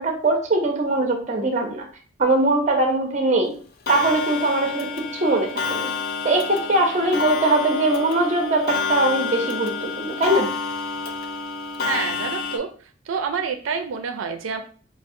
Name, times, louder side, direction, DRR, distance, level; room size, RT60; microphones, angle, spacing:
voice 1, 0.0-1.8 2.2-3.6 3.9-5.9 6.2-10.5, right 2 dB, 35° right, 3 dB, 0.6 m, -21 dB
Clock, 3.9-12.6, left 4 dB, 50° left, 0.4 m, -28 dB
voice 2, 11.8-12.7 13.1-14.6, right 5 dB, 85° right, 6 dB, 0.4 m, -27 dB
4.5 x 2.0 x 2.5 m, 0.42 s
head